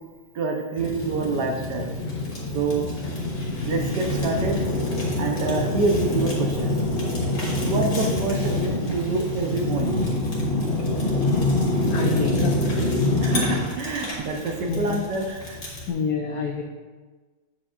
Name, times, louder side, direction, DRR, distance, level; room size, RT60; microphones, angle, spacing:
voice 1, 0.3-1.9 2.5-2.8 3.7-4.6 5.2-6.7 7.6-10.0 13.2-15.6, right 3 dB, 65° right, 2 dB, 1.3 m, -27 dB
Fire, 0.8-15.9, left 1 dB, 60° left, 2.4 m, -26 dB
voice 2, 11.9-12.9 13.3-13.5 14.0-14.1 14.7-15.0 15.9-16.6, left 5 dB, 75° left, 2 dB, 0.8 m, -28 dB
8.1 x 7.5 x 2.4 m, 1.3 s
omnidirectional pair, 2.2 m